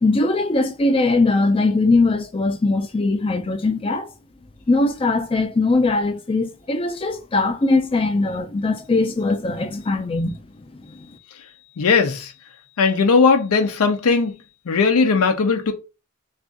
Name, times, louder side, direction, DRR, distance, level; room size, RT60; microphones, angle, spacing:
voice 1, 0.0-4.1 4.7-10.4 10.7-11.1, left 3 dB, 25° left, 0.4 m, -20 dB
voice 2, 11.8-12.3 12.8-14.4 14.7-15.7, left 4 dB, 80° left, 0.5 m, -18 dB
2.5 x 2.4 x 3.6 m
head